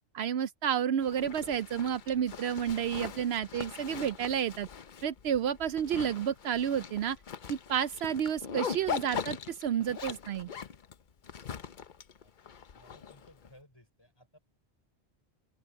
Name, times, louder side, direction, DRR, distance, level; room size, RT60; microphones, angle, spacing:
voice 1, 0.1-4.7 5.0-7.2 7.5-10.5, right 9 dB, 70° right, 0.8 m, -31 dB
Zipper (clothing), 1.0-13.5, left 7 dB, 50° left, 0.9 m, -41 dB
voice 2, 12.2-14.4, left 1 dB, 20° left, 5.6 m, -61 dB
open air
omnidirectional pair, 1.1 m